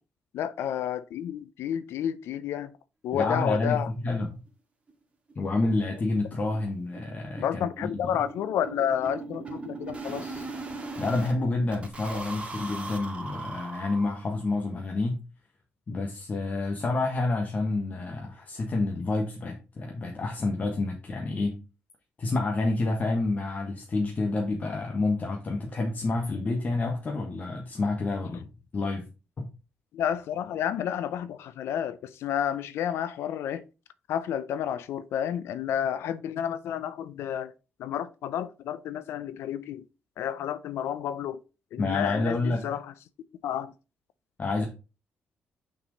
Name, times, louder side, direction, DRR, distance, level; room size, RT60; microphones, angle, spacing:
voice 1, 0.3-2.7 3.0-3.9 7.4-10.5 29.9-33.6 34.1-37.5 37.8-39.8 40.2-41.4 41.7-42.9 43.4-43.7, left 9 dB, 80° left, 0.5 m, -30 dB
voice 2, 3.1-4.4 5.3-8.2 11.0-15.2 15.9-21.6 22.2-29.1 29.4-29.5 41.8-42.7 44.4-44.7, left 2 dB, 40° left, 1.3 m, -29 dB
sound 1, 4.5-4.6 4.9-5.0 5.3-5.4 5.7-5.9 6.1-11.3 11.7-14.5, right 3 dB, 30° right, 1.9 m, -39 dB
5.9 x 4.6 x 4.0 m
cardioid pair, 85°, 4 cm